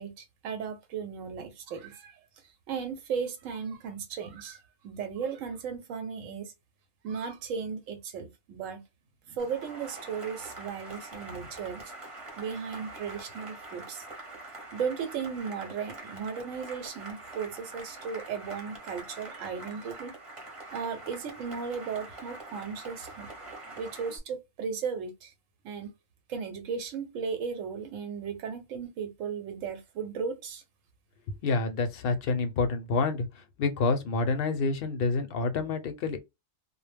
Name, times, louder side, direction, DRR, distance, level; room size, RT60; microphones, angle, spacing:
voice 1, 0.0-2.2 2.7-4.6 4.8-6.5 7.0-8.8 9.3-11.8 12.4-14.0 14.7-20.2 20.7-23.3 23.7-25.3 25.6-25.9 26.3-30.6, right 6 dB, 90° right, 1.0 m, -36 dB
Cheering / Applause, 9.4-24.2, right 2 dB, 30° right, 0.8 m, -45 dB
voice 2, 31.4-33.3 33.6-36.2, left 3 dB, 60° left, 0.6 m, -28 dB
2.2 x 2.0 x 3.2 m
omnidirectional pair, 1.3 m